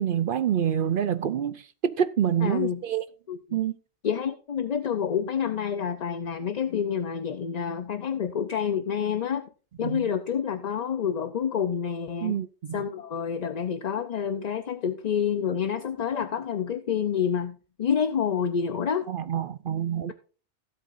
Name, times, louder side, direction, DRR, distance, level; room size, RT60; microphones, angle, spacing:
voice 1, 0.0-3.0 3.5-3.8 9.8-10.1 12.2-12.8 19.1-20.1, right 9 dB, 60° right, 0.7 m, -27 dB
voice 2, 2.4-2.8 3.3-3.6 4.0-9.5 9.8-12.4 12.7-19.1, left 7 dB, 45° left, 0.6 m, -28 dB
16.5 x 7.8 x 2.6 m
omnidirectional pair, 1.1 m